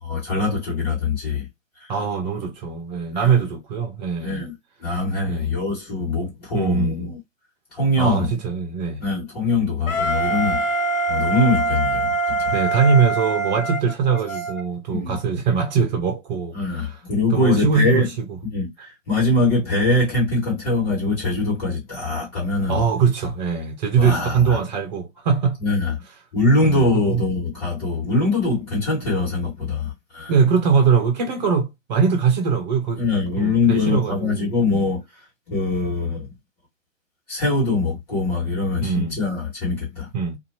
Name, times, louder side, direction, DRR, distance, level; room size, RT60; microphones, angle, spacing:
voice 1, 0.0-1.5 1.8-1.9 3.1-3.4 4.2-4.5 4.8-7.2 7.7-8.3 9.0-10.8 11.1-12.5 14.9-15.2 16.5-18.1 18.4-22.8 24.0-24.6 25.6-25.9 26.3-30.3 33.0-35.0 35.5-36.3 37.3-40.1, left 2 dB, 30° left, 1.8 m, -22 dB
voice 2, 1.9-4.4 5.3-5.6 6.5-7.1 8.0-9.0 12.5-16.6 17.3-18.1 22.7-25.6 26.6-27.2 30.3-33.0 33.4-34.8 38.8-39.2 40.1-40.4, right 6 dB, 35° right, 0.8 m, -22 dB
Wind instrument woodwind instrument, 9.9-14.6, right 3 dB, 80° left, 0.7 m, -24 dB
2.7 x 2.6 x 2.7 m
figure-of-eight pair, 125°, 40 cm